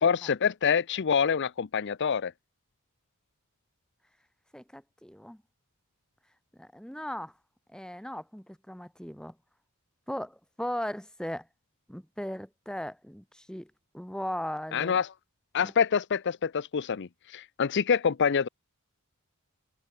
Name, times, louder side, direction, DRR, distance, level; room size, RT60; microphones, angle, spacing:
voice 1, 0.0-2.3 14.7-15.1 15.5-18.5, left 6 dB, 55° left, 0.5 m, -26 dB
voice 2, 4.5-5.4 6.5-7.3 7.7-9.3 10.1-11.5 11.9-15.0 15.6-15.7, equal, 5° left, 2.6 m, -38 dB
head